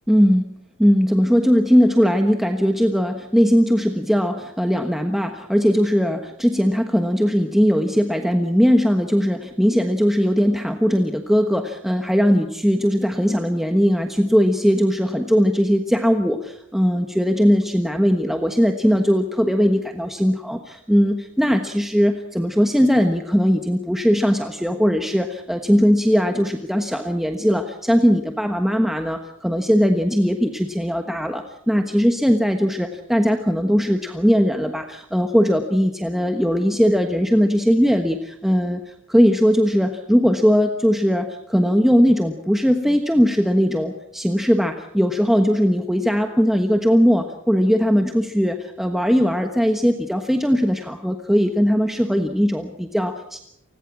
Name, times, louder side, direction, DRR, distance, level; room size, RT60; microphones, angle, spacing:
voice 1, 0.1-0.5 0.8-53.4, equal, ahead, 5 dB, 1.2 m, -19 dB
29.0 x 20.0 x 6.1 m, 0.77 s
head